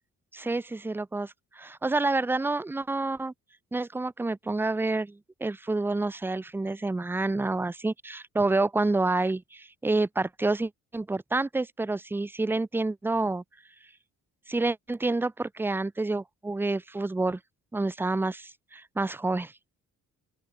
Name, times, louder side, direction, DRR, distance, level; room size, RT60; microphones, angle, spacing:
voice 1, 0.3-3.3 3.7-13.4 14.5-17.4 17.7-19.5, right 2 dB, 5° right, 0.5 m, -28 dB
open air
cardioid pair, 160°, 31 cm